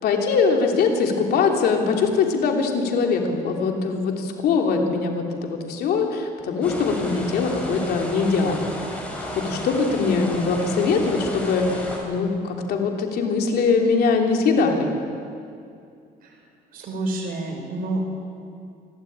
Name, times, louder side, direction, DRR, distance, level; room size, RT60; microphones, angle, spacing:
voice 1, 0.0-8.8 9.2-14.9, left 4 dB, 70° left, 2 dB, 3.2 m, -22 dB
sound 1, 6.6-12.0, equal, 5° left, 7.2 m, -33 dB
voice 2, 16.7-18.0, right 2 dB, 60° right, 1 dB, 4.5 m, -28 dB
27.5 x 12.5 x 8.9 m, 2.4 s
cardioid pair, 110°, 17 cm